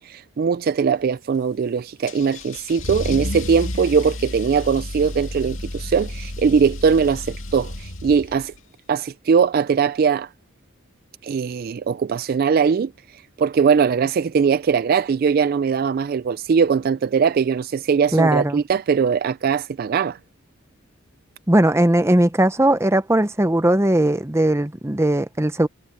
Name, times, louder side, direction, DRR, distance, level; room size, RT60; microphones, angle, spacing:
voice 1, 0.0-8.5 8.9-10.3 11.2-12.9 13.4-20.2, right 6 dB, 45° right, 0.3 m, -20 dB
Car / Engine starting / Accelerating revving vroom, 2.1-8.6, left 1 dB, 75° left, 2.3 m, -31 dB
voice 2, 18.1-18.6 21.5-25.7, right 1 dB, 15° right, 0.8 m, -18 dB
head